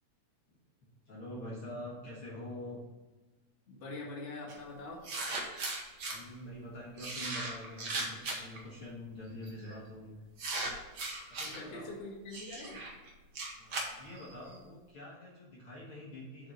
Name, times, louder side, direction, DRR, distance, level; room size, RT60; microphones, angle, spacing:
voice 1, 1.1-2.8 6.1-10.2 11.3-11.9 13.6-16.5, left 1 dB, 50° left, -5 dB, 2.0 m, -45 dB
voice 2, 3.7-5.0 11.4-12.8, left 2 dB, 30° left, -4 dB, 1.6 m, -44 dB
sound 1, 4.5-4.6 5.0-6.2 7.0-8.6 9.4-9.7 10.4-11.6 12.3-14.6, right 2 dB, 60° right, 1.1 m, -38 dB
8.0 x 4.3 x 5.3 m, 1.3 s
omnidirectional pair, 3.5 m